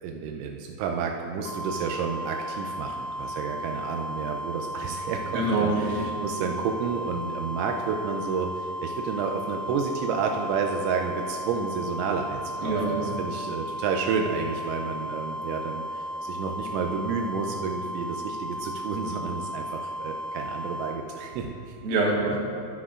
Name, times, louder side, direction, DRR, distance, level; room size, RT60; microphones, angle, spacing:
voice 1, 0.0-21.8, right 5 dB, 85° right, 2 dB, 2.6 m, -30 dB
sound 1, 1.5-21.0, equal, 75° left, 3.6 m, -35 dB
voice 2, 5.3-6.1 12.6-13.0 21.8-22.4, right 2 dB, 60° right, -5 dB, 2.9 m, -25 dB
14.5 x 9.6 x 2.5 m, 2.5 s
omnidirectional pair, 5.9 m